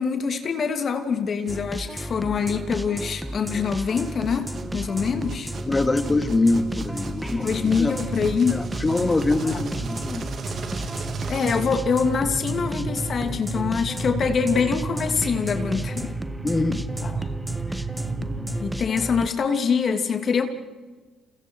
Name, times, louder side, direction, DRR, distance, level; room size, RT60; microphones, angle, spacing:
voice 1, 0.0-5.5 7.4-8.7 9.4-9.6 11.3-16.1 17.0-17.1 17.7-17.8 18.6-20.5, left 6 dB, 50° left, 6 dB, 2.8 m, -24 dB
sound 1, 1.5-19.3, right 1 dB, 5° right, 1.4 m, -33 dB
sound 2, 3.6-12.3, right 5 dB, 55° right, 3.3 m, -42 dB
sound 3, 4.4-18.6, right 4 dB, 70° right, 2.6 m, -34 dB
voice 2, 5.7-7.9 8.5-10.2 16.4-16.8, left 2 dB, 25° left, 8 dB, 2.6 m, -24 dB
29.5 x 29.0 x 4.7 m, 1.3 s
hypercardioid pair, 55°, 0 cm